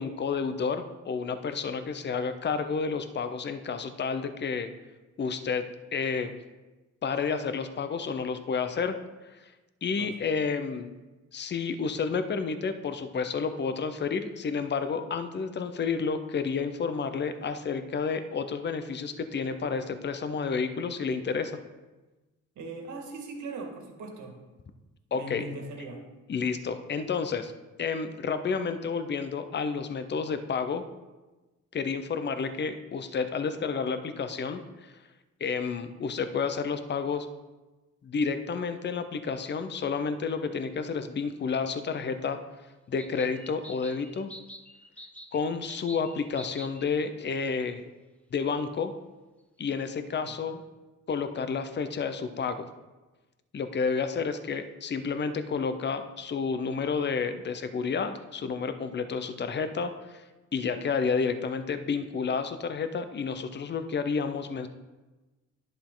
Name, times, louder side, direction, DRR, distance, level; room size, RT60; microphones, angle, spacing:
voice 1, 0.0-4.7 5.2-6.4 7.0-9.0 9.8-11.0 11.3-21.6 25.1-25.4 26.3-27.5 27.8-30.8 31.7-34.9 35.4-37.3 38.0-42.4 42.9-44.3 45.3-47.8 48.3-48.9 49.6-50.6 51.1-52.7 53.5-60.2 60.5-64.7, left 5 dB, 35° left, 9 dB, 0.8 m, -30 dB
voice 2, 22.6-24.4 25.1-26.1 50.3-50.4, right 2 dB, 75° right, 2 dB, 2.0 m, -40 dB
sound 1, 40.4-40.5 43.0-46.9, equal, 5° left, 0.8 m, -47 dB
10.5 x 6.8 x 3.9 m, 1.2 s
cardioid pair, 90°, 30 cm